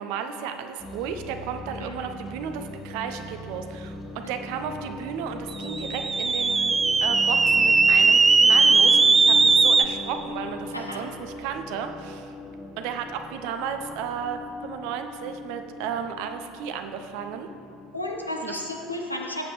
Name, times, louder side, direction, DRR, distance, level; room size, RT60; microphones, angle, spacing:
voice 1, 0.0-12.3 12.8-17.5 18.4-18.5, right 7 dB, 55° right, 7 dB, 0.7 m, -34 dB
sound 1, 0.8-18.9, left 2 dB, 25° left, 1.0 m, -40 dB
sound 2, 5.6-9.8, right 4 dB, 20° right, 0.4 m, -18 dB
voice 2, 10.7-11.0 17.9-19.5, left 1 dB, 90° left, 1 dB, 1.0 m, -33 dB
16.5 x 7.7 x 3.2 m, 2.6 s
figure-of-eight pair, 70°, 0 cm